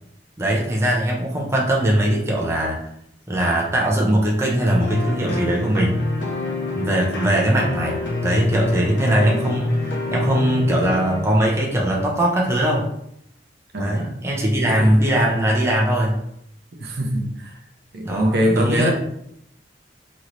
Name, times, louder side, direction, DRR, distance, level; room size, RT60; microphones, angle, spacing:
voice 1, 0.4-2.8 3.3-6.0 6.8-12.9 13.8-16.2 18.0-18.9, right 1 dB, 15° right, -3 dB, 0.5 m, -20 dB
sound 1, 4.7-11.2, left 2 dB, 80° left, 0.7 m, -26 dB
voice 2, 13.7-14.1 14.7-14.9 16.8-17.6 17.9-18.9, equal, 60° right, 2 dB, 0.6 m, -23 dB
3.0 x 2.9 x 2.5 m, 0.75 s
head